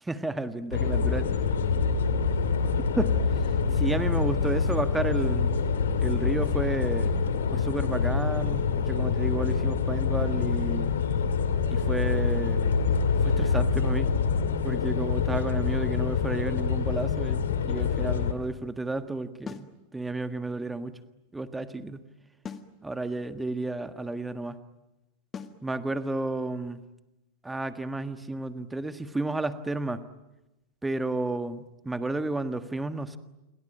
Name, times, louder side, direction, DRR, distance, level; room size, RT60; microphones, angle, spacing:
voice 1, 0.1-1.3 2.9-5.6 6.0-10.9 11.7-12.8 13.1-14.2 14.6-21.0 21.3-22.1 22.8-24.6 25.6-26.8 27.4-30.0 30.8-33.2, right 2 dB, 10° right, 10 dB, 1.6 m, -32 dB
sound 1, 0.7-18.3, left 5 dB, 65° left, 2.5 m, -26 dB
sound 2, 19.5-19.8 22.4-22.8 25.3-25.6, left 6 dB, 20° left, 1.7 m, -39 dB
28.0 x 23.0 x 9.0 m, 0.98 s
figure-of-eight pair, 90°, 0 cm